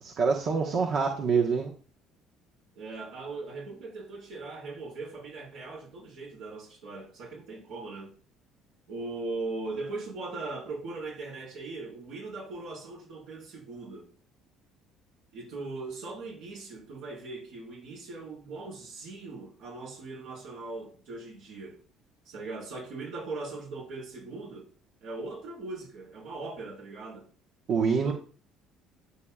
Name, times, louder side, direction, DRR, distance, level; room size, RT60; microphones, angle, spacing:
voice 1, 0.0-1.7 27.7-28.1, right 5 dB, 55° right, 1.3 m, -26 dB
voice 2, 2.7-8.1 8.9-14.1 15.3-21.8 22.2-24.7 25.0-27.3 27.8-28.1, right 3 dB, 75° right, 4.7 m, -39 dB
12.0 x 6.8 x 2.4 m
hypercardioid pair, 70°, 0 cm